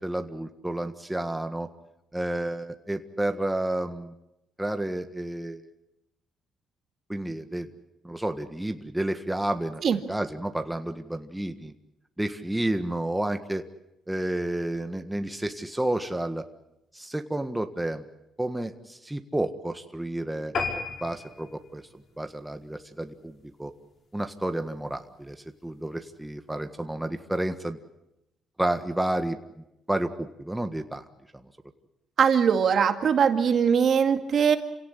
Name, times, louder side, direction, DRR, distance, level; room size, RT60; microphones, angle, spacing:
voice 1, 0.0-1.7 2.1-4.1 4.6-5.6 7.1-7.7 8.0-11.7 12.2-13.6 14.1-16.4 16.9-18.0 18.4-20.5 21.0-21.8 22.2-23.7 24.1-25.4 25.6-27.8 28.6-29.4 29.9-31.0 31.3-31.4, right 1 dB, 5° right, 7 dB, 1.6 m, -30 dB
sound 1, 20.5-23.3 23.8-24.0 24.4-24.5 24.8-24.9 25.1-25.2, left 4 dB, 55° left, 5.1 m, -34 dB
voice 2, 32.2-34.6, right 7 dB, 60° right, 7 dB, 2.1 m, -21 dB
28.0 x 17.0 x 9.8 m, 0.91 s
cardioid pair, 90°, 0 cm